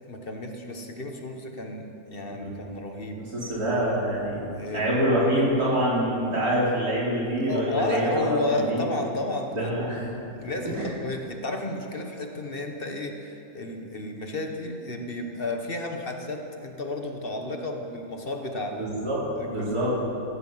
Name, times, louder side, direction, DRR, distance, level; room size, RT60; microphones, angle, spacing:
voice 1, 0.1-3.2 4.5-4.9 7.4-9.7 10.4-18.9 19.4-19.7, left 2 dB, 40° left, 3 dB, 1.5 m, -32 dB
voice 2, 3.2-4.4 4.7-8.8 9.5-10.0 10.6-10.9 18.7-19.2 19.5-20.0, right 1 dB, 85° right, -7 dB, 4.6 m, -26 dB
16.0 x 15.5 x 5.8 m, 2.8 s
omnidirectional pair, 1.6 m